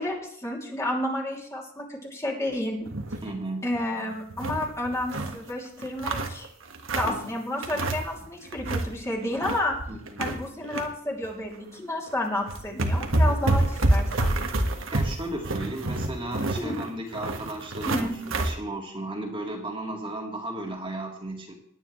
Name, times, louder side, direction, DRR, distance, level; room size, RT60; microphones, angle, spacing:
voice 1, 0.0-2.9 3.6-6.5 7.0-9.8 10.2-14.3 16.6-16.8 17.8-18.2, left 1 dB, 15° left, -2 dB, 2.9 m, -31 dB
sound 1, 2.9-3.3 3.7-3.8 4.1-5.4 5.8-7.2 7.6-8.2 8.5-8.9 9.2-10.9 11.2-11.4 12.1-12.2 12.5-18.5, right 2 dB, 90° right, 1.6 m, -27 dB
voice 2, 3.2-3.7 7.0-7.3 9.9-10.3 14.9-21.5, right 1 dB, 25° right, 0 dB, 2.2 m, -35 dB
19.0 x 9.8 x 3.2 m, 0.67 s
head